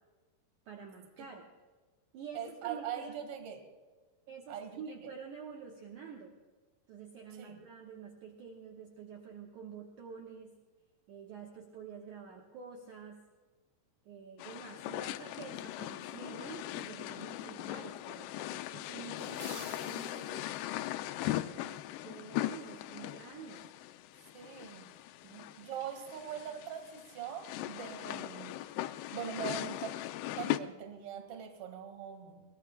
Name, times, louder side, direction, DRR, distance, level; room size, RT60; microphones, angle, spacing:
voice 1, 0.7-1.5 2.1-3.3 4.3-6.3 6.9-10.5 11.1-13.2 14.0-20.5 21.2-23.7 25.2-25.5, right 6 dB, 60° right, 0 dB, 2.3 m, -48 dB
voice 2, 2.3-3.6 4.5-4.8 7.4-7.6 24.3-24.9 25.6-28.5 29.1-30.0 30.4-32.4, right 8 dB, 45° right, 5 dB, 2.3 m, -42 dB
sound 1, 14.4-30.6, left 14 dB, 85° left, 2.6 m, -39 dB
sound 2, 19.2-20.7, right 2 dB, 30° right, 2.0 m, -51 dB
22.5 x 18.0 x 2.3 m, 1.3 s
omnidirectional pair, 4.6 m